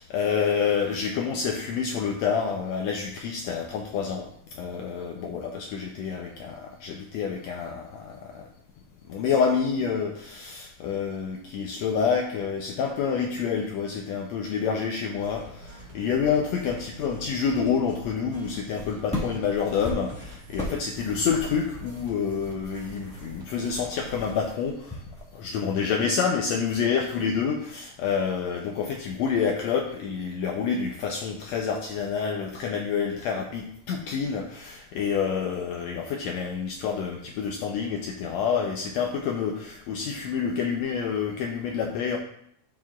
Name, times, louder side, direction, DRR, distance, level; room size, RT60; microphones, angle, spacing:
voice 1, 0.0-8.5 9.1-25.0 25.3-42.2, left 6 dB, 80° left, 2 dB, 1.6 m, -28 dB
sound 1, 15.1-24.5, equal, 70° right, 3.2 m, -45 dB
sound 2, 18.3-25.3, left 1 dB, 10° left, 0.4 m, -39 dB
13.0 x 4.8 x 2.4 m, 0.70 s
omnidirectional pair, 3.6 m